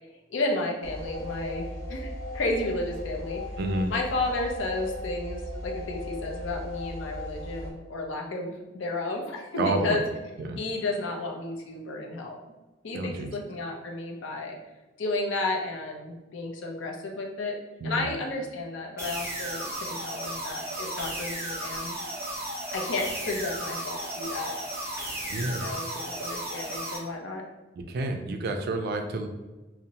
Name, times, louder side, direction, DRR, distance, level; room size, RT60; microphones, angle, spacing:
voice 1, 0.3-3.4 3.9-10.0 10.5-12.4 12.8-14.6 15.0-17.6 17.8-22.0 22.7-24.5 25.3-27.4, left 2 dB, 75° left, 1 dB, 0.5 m, -32 dB
sound 1, 0.8-7.7, left 1 dB, 20° left, 0.8 m, -37 dB
voice 2, 3.6-3.9 9.6-10.0 10.4-10.6 12.9-13.3 17.8-18.1 25.3-25.6 27.8-29.3, right 2 dB, 55° right, 6 dB, 0.3 m, -29 dB
sound 2, 19.0-27.0, right 1 dB, 15° right, 0.6 m, -34 dB
2.7 x 2.0 x 2.8 m, 1.1 s
head